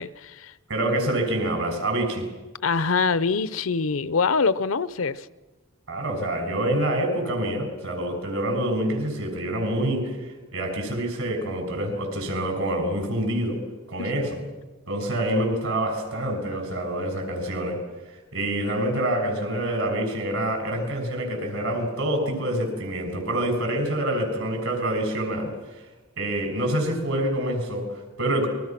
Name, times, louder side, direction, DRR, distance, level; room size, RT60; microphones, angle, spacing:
voice 1, 0.0-0.5 2.6-5.3 14.0-14.1, left 4 dB, 70° left, 0.7 m, -24 dB
voice 2, 0.7-2.3 5.9-13.6 13.9-14.4 14.9-17.8 18.3-25.9 26.2-28.5, right 1 dB, 75° right, 6.5 m, -26 dB
28.5 x 22.0 x 6.0 m
head